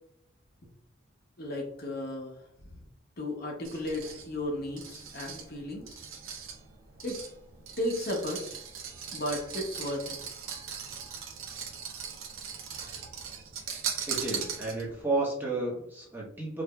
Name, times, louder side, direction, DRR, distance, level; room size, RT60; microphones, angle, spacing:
voice 1, 1.4-2.5 3.2-6.0 7.0-7.2 7.8-8.7 9.1-10.2, left 1 dB, 50° left, 0 dB, 0.8 m, -34 dB
sound 1, 3.6-15.0, right 7 dB, 80° right, 0.7 m, -40 dB
voice 2, 14.1-16.6, right 2 dB, 10° right, -5 dB, 0.9 m, -32 dB
4.8 x 2.6 x 2.2 m, 0.72 s
head